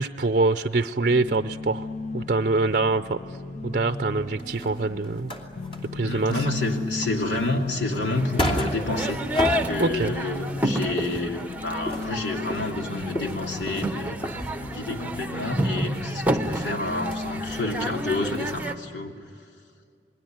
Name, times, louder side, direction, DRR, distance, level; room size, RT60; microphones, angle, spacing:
voice 1, 0.0-1.9 2.1-3.2 3.6-5.3 5.9-6.4 9.8-10.2, right 3 dB, 45° right, 10 dB, 0.6 m, -24 dB
sound 1, 1.1-18.3, left 2 dB, 45° left, 1.4 m, -36 dB
sound 2, 3.9-6.0 6.3-10.5 10.8-15.4 15.7-16.0 16.4-17.9 18.2-18.3 18.7-18.8, equal, 30° left, 2.7 m, -33 dB
voice 2, 6.0-9.2 9.5-14.1 14.6-19.2, left 2 dB, 90° left, 2 dB, 2.9 m, -29 dB
sound 3, 8.2-18.7, right 1 dB, 10° right, 0.9 m, -31 dB
28.5 x 21.0 x 9.2 m, 2.3 s
head